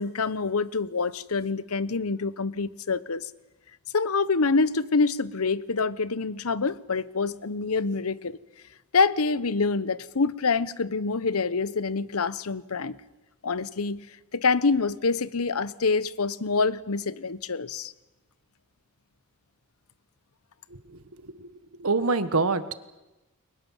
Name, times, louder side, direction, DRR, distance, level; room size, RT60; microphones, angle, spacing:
voice 1, 0.0-3.3 3.9-8.4 8.9-13.0 13.4-14.0 14.3-17.9, left 4 dB, 90° left, 1.0 m, -26 dB
voice 2, 21.8-22.7, right 3 dB, 80° right, 1.5 m, -25 dB
30.0 x 23.0 x 7.4 m
head